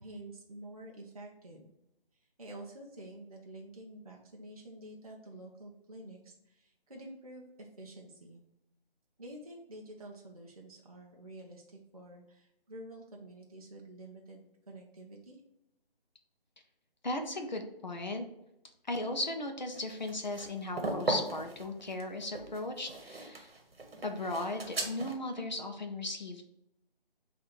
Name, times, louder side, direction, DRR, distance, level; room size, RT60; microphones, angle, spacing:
voice 1, 0.0-1.7 2.4-8.4 9.2-11.6 11.9-15.4, right 1 dB, 40° right, -1 dB, 0.4 m, -49 dB
voice 2, 17.0-18.3 18.9-23.5 24.0-26.4, left 2 dB, 50° left, 5 dB, 0.5 m, -36 dB
sound 1, 19.7-25.1, right 2 dB, 80° right, 1.0 m, -38 dB
4.4 x 2.5 x 4.1 m, 0.86 s
hypercardioid pair, 180°, 29 cm